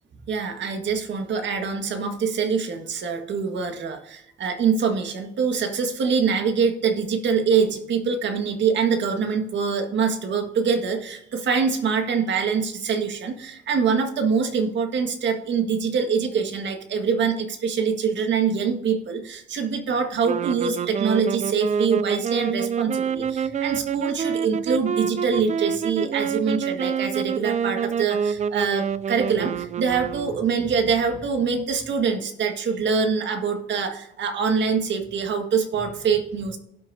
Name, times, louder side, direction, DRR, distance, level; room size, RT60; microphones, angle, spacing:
voice 1, 0.3-36.6, right 5 dB, 65° right, 6 dB, 1.7 m, -24 dB
sound 1, 20.2-30.7, right 7 dB, 35° right, 0.4 m, -27 dB
17.0 x 6.2 x 2.7 m, 0.80 s
cardioid pair, 90°, 20 cm